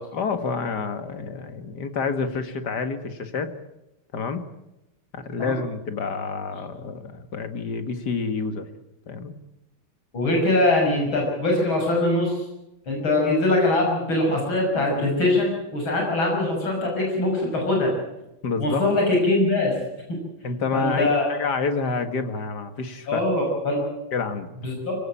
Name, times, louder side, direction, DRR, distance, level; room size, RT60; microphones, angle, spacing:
voice 1, 0.1-3.5 4.1-4.5 5.1-8.7 9.1-9.3 18.4-18.8 20.4-23.2 24.1-24.5, left 4 dB, 55° left, 9 dB, 2.4 m, -28 dB
voice 2, 10.1-12.4 12.9-18.0 18.6-19.7 20.1-20.2 20.7-21.3 23.1-23.8 24.6-25.0, left 2 dB, 75° left, -1 dB, 7.0 m, -22 dB
25.0 x 17.5 x 8.7 m, 0.93 s
omnidirectional pair, 2.3 m